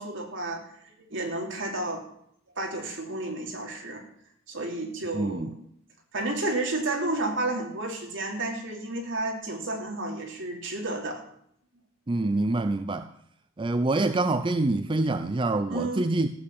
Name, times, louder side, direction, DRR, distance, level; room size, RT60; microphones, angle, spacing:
voice 1, 0.0-2.1 2.6-4.0 4.5-5.6 6.1-11.2 15.7-16.1, right 2 dB, 65° right, 3.0 m, -31 dB
voice 2, 5.1-5.5 12.1-13.1 13.6-16.3, right 2 dB, 25° right, 0.5 m, -26 dB
14.5 x 8.0 x 7.8 m
head